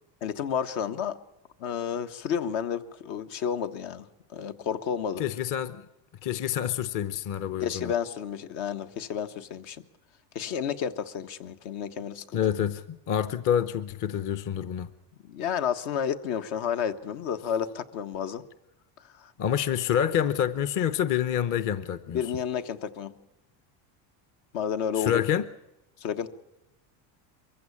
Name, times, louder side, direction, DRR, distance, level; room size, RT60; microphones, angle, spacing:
voice 1, 0.2-1.2 1.6-4.1 4.3-5.2 7.6-9.8 10.3-12.4 15.2-18.4 19.0-19.3 22.1-23.1 24.5-25.2 26.0-26.3, left 8 dB, 70° left, 1.5 m, -31 dB
voice 2, 5.2-5.8 6.2-7.9 12.3-14.9 19.4-22.2 25.0-25.4, left 9 dB, 40° left, 0.9 m, -27 dB
23.0 x 15.5 x 8.6 m
supercardioid pair, 120°, 49 cm